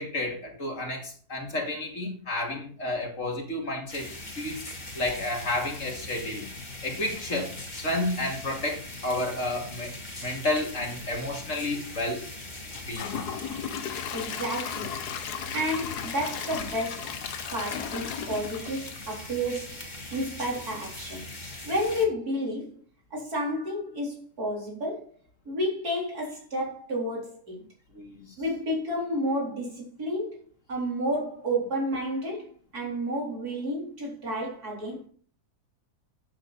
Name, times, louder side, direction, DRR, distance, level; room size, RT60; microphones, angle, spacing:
voice 1, 0.0-4.1 4.4-4.6 4.9-6.5 6.8-9.9 10.2-12.3 12.8-13.2 27.9-28.3, left 2 dB, 50° left, 2.6 m, -31 dB
sound 1, 3.9-22.1, left 2 dB, 30° left, 2.4 m, -41 dB
Gurgling / Toilet flush / Trickle dribble, 12.7-19.8 20.2-20.3 20.8-20.9, left 8 dB, 80° left, 1.5 m, -36 dB
voice 2, 14.1-15.0 15.5-17.2 17.5-19.8 20.1-21.3 21.6-22.7 23.1-25.1 25.5-27.6 28.4-30.4 30.7-35.1, equal, 70° right, 4.5 m, -31 dB
11.5 x 7.9 x 4.2 m
omnidirectional pair, 1.7 m